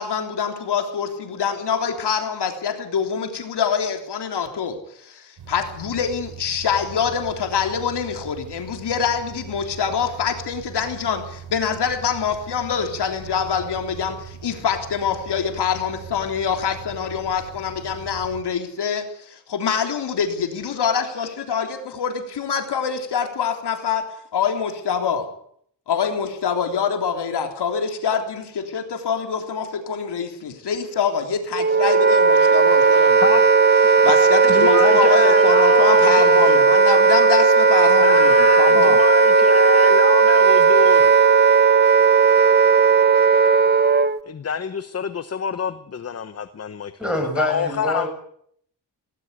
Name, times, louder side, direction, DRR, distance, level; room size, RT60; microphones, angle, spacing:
voice 1, 0.0-24.1 24.3-25.3 25.9-33.4 34.0-39.0, left 7 dB, 75° left, 5 dB, 3.5 m, -25 dB
sound 1, 5.4-18.4, right 8 dB, 75° right, 4.2 m, -40 dB
Wind instrument woodwind instrument, 31.5-44.2, right 5 dB, 25° right, 0.9 m, -15 dB
voice 2, 34.4-36.6 38.0-41.1 44.3-46.9 47.4-48.1, left 7 dB, 35° left, 12 dB, 1.0 m, -26 dB
voice 3, 47.0-48.1, left 1 dB, ahead, 4 dB, 6.5 m, -25 dB
18.5 x 17.5 x 8.3 m, 0.66 s
wide cardioid pair, 145°, 41 cm